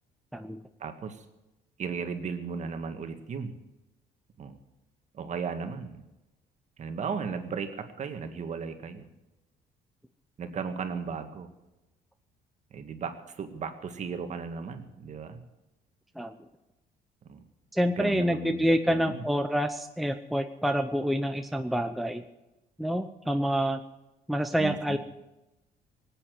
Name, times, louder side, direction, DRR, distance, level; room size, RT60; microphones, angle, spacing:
voice 1, 0.8-1.2 1.8-3.6 4.4-4.6 5.1-6.0 6.8-9.1 10.4-11.5 12.7-15.4 17.3-17.4 17.9-19.2 24.6-25.0, right 5 dB, 45° right, 7 dB, 1.9 m, -36 dB
voice 2, 17.7-22.2 22.8-23.8 24.3-25.0, equal, ahead, 6 dB, 0.8 m, -27 dB
18.5 x 8.9 x 7.8 m, 0.99 s
cardioid pair, 110°, 17 cm